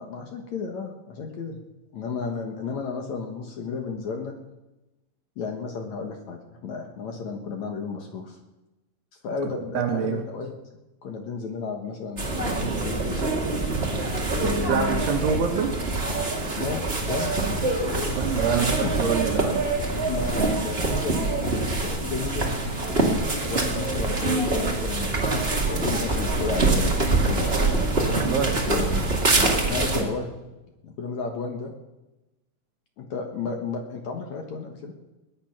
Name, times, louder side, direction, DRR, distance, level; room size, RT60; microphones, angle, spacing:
voice 1, 0.0-1.6 1.9-4.3 5.4-8.4 9.2-10.5 11.0-13.3 14.3-15.0 16.5-17.4 17.8-18.2 18.6-18.9 20.1-22.5 23.5-27.9 28.6-29.1 29.3-30.3 30.8-31.7 33.0-34.9, left 5 dB, 60° left, 4 dB, 2.0 m, -33 dB
voice 2, 9.7-10.2 14.1-14.3 14.7-15.7 18.1-19.5 28.1-28.6, right 6 dB, 80° right, 1 dB, 3.4 m, -25 dB
sound 1, 12.2-30.0, right 2 dB, 25° right, 1.2 m, -25 dB
20.5 x 9.9 x 6.0 m, 1.0 s
omnidirectional pair, 4.7 m